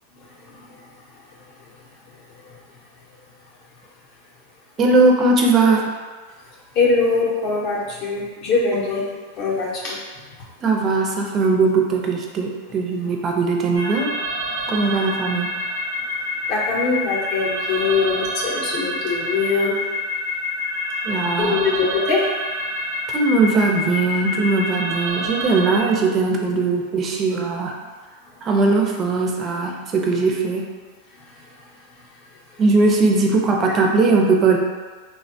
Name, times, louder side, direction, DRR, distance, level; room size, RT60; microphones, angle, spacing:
voice 1, 0.1-1.0 1.3-1.7 2.0-2.8 6.7-9.1 9.4-10.0 14.6-15.1 16.5-19.8 21.4-22.2 31.1-32.1, left 4 dB, 45° left, -3 dB, 0.7 m, -23 dB
voice 2, 4.8-5.8 10.6-14.1 14.7-15.5 21.0-21.6 23.1-27.8 28.4-30.6 32.6-34.6, right 3 dB, 30° right, 1 dB, 0.4 m, -19 dB
sound 1, 13.7-25.8, left 1 dB, 75° right, 0.6 m, -27 dB
3.4 x 2.1 x 2.6 m, 1.4 s
supercardioid pair, 140°, 0 cm